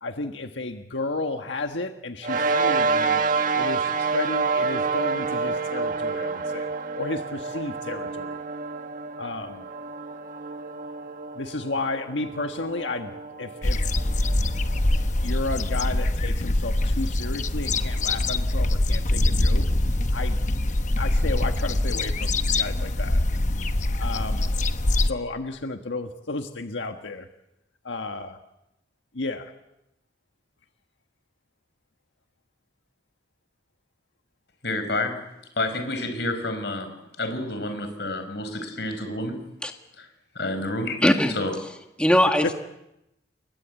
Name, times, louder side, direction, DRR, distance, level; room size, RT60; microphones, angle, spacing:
voice 1, 0.0-3.2 3.5-8.4 9.2-9.6 11.3-13.1 13.4-13.8 15.2-19.7 20.1-20.4 20.9-23.2 24.0-24.5 25.0-27.3 27.8-28.4 29.1-29.5 42.4-42.5, left 2 dB, 90° left, 6 dB, 1.5 m, -32 dB
sound 1, 2.2-15.0, right 4 dB, 45° right, 1.6 m, -28 dB
sound 2, 13.6-25.1, left 1 dB, 40° left, 1.0 m, -24 dB
voice 2, 34.6-35.2 35.6-39.4 40.0-40.1 40.4-41.0 41.3-41.5, left 2 dB, 65° left, 8 dB, 5.2 m, -29 dB
voice 3, 41.0-41.3 42.0-42.5, equal, 5° left, 4 dB, 1.7 m, -19 dB
29.5 x 22.5 x 8.3 m, 0.88 s
head